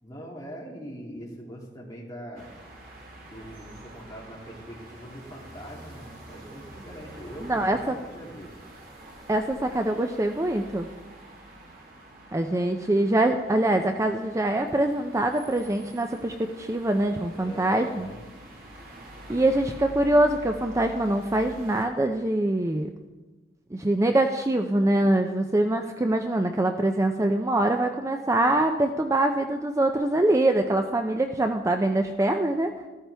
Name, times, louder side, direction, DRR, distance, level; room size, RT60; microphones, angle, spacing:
voice 1, 0.0-2.5 3.3-8.6 17.3-18.2, equal, 20° left, -4 dB, 2.7 m, -42 dB
sound 1, 2.4-21.9, right 1 dB, 55° right, 2.3 m, -46 dB
voice 2, 7.4-7.9 9.3-10.9 12.3-18.1 19.3-22.9 23.7-32.7, right 1 dB, 15° right, 5 dB, 0.5 m, -24 dB
13.5 x 13.0 x 3.4 m, 1.2 s
head